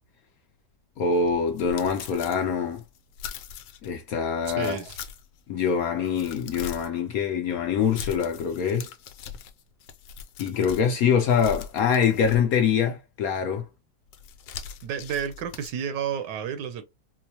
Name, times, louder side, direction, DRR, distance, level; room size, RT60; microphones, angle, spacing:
voice 1, 1.0-2.8 3.8-4.8 5.5-8.9 10.4-13.7, left 7 dB, 65° left, 0.9 m, -24 dB
sound 1, 1.1-3.9 4.4-5.4 5.8-7.0 7.8-10.9 11.3-12.7 14.1-15.7, left 7 dB, 85° left, 1.3 m, -41 dB
voice 2, 4.6-5.0 14.8-16.8, right 8 dB, 80° right, 1.3 m, -31 dB
4.5 x 2.1 x 2.8 m
omnidirectional pair, 1.9 m